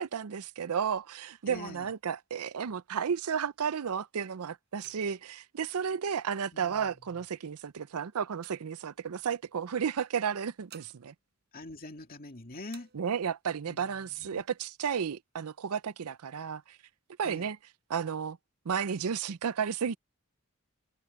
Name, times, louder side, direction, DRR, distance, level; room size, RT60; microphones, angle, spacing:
voice 1, 0.0-11.1 12.9-16.8 17.2-17.6 17.9-18.4 18.7-20.0, right 7 dB, 80° right, 0.5 m, -33 dB
voice 2, 1.5-1.9 6.5-6.9 11.5-12.9 13.7-14.4 17.2-17.5, left 2 dB, 40° left, 2.4 m, -44 dB
sound 1, 1.9-3.6 4.1-4.3 4.7-6.6 7.3-9.4 10.3-12.3 12.6-13.5 14.0-14.1 14.3-15.0 15.5-16.4, right 9 dB, 45° right, 6.2 m, -62 dB
head